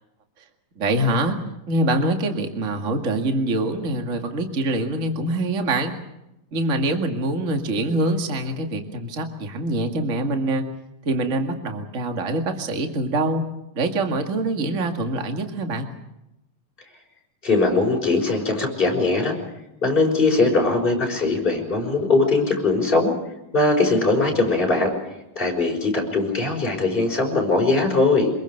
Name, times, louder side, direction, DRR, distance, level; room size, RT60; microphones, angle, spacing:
voice 1, 0.8-1.4 1.7-5.9 6.5-10.6 11.1-13.4 13.8-15.9, right 2 dB, 25° right, 4 dB, 1.9 m, -24 dB
voice 2, 17.4-19.3 19.8-23.1 23.5-24.9 25.4-28.3, left 3 dB, 15° left, 0 dB, 5.6 m, -20 dB
24.5 x 22.0 x 6.6 m, 0.90 s
omnidirectional pair, 3.8 m